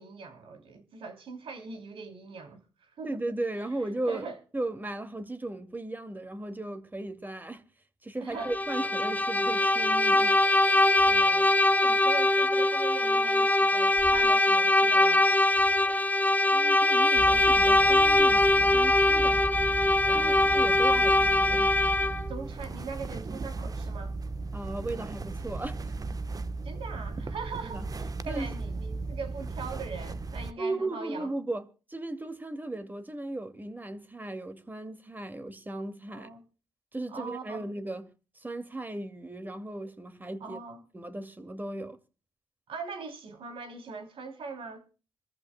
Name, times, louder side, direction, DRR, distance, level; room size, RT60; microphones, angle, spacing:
voice 1, 0.0-3.2 4.0-4.4 8.2-8.5 11.1-15.2 20.0-20.4 22.3-24.1 26.6-31.3 36.1-36.4 37.1-37.7 40.4-40.8 42.7-44.8, right 4 dB, 70° right, 3.1 m, -41 dB
voice 2, 3.0-4.3 4.5-7.6 8.0-10.4 16.5-19.4 20.1-21.7 24.5-25.9 27.6-27.9 28.3-28.5 30.6-36.3 36.9-38.1 38.4-40.6 40.9-42.0, right 2 dB, 20° right, 2.3 m, -36 dB
Bowed string instrument, 8.4-22.3, left 2 dB, 15° left, 1.0 m, -22 dB
sound 1, 17.2-30.5, right 3 dB, 40° right, 1.0 m, -36 dB
26.5 x 14.0 x 2.2 m
supercardioid pair, 50°, 9 cm